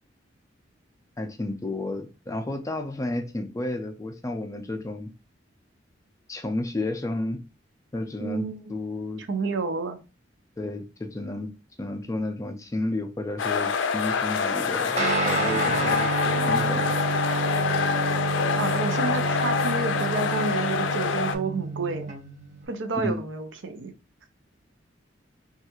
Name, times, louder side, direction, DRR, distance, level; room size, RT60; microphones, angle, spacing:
voice 1, 1.2-5.1 6.3-7.4 7.9-9.2 10.6-11.5 11.8-16.9 23.0-23.2, left 2 dB, 15° left, 0.4 m, -32 dB
voice 2, 8.2-8.6 9.3-10.0 18.5-22.1 22.7-23.9, right 4 dB, 75° right, 0.5 m, -30 dB
sound 1, 13.4-21.4, left 5 dB, 80° left, 0.4 m, -26 dB
Guitar, 15.0-22.7, right 3 dB, 40° right, 0.7 m, -29 dB
3.1 x 2.3 x 3.0 m
head